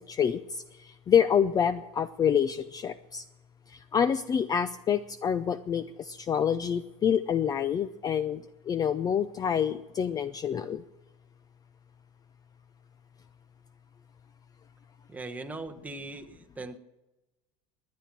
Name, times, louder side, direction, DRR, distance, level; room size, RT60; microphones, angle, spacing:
voice 1, 0.1-3.2 3.7-10.8, left 8 dB, 25° left, 15 dB, 0.5 m, -27 dB
voice 2, 15.1-16.8, right 2 dB, 10° right, 4 dB, 1.1 m, -40 dB
17.0 x 10.5 x 7.5 m, 1.0 s
supercardioid pair, 125°, 15 cm